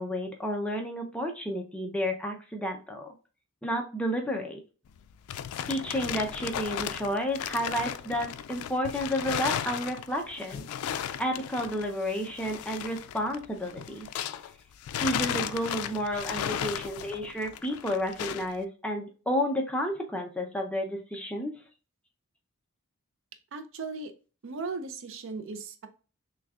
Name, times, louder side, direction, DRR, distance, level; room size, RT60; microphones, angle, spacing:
voice 1, 0.0-3.1 3.6-4.6 5.7-10.6 11.2-14.1 15.0-21.6, equal, 5° left, 2 dB, 0.5 m, -31 dB
sound 1, 4.9-14.5 14.8-18.5, left 9 dB, 90° left, 0.3 m, -35 dB
voice 2, 23.5-24.1 24.4-25.9, right 4 dB, 60° right, 9 dB, 0.5 m, -37 dB
6.0 x 2.3 x 2.3 m, 0.36 s
head